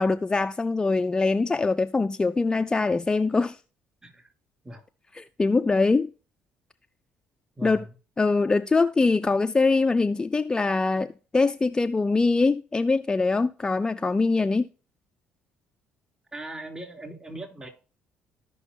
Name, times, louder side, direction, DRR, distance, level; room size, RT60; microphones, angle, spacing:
voice 1, 0.0-3.6 5.1-6.1 7.6-7.8 8.2-14.7, left 3 dB, 20° left, 0.4 m, -23 dB
voice 2, 7.6-7.9 16.3-17.7, right 1 dB, 20° right, 3.2 m, -39 dB
14.5 x 5.4 x 2.8 m
supercardioid pair, 80°, 4 cm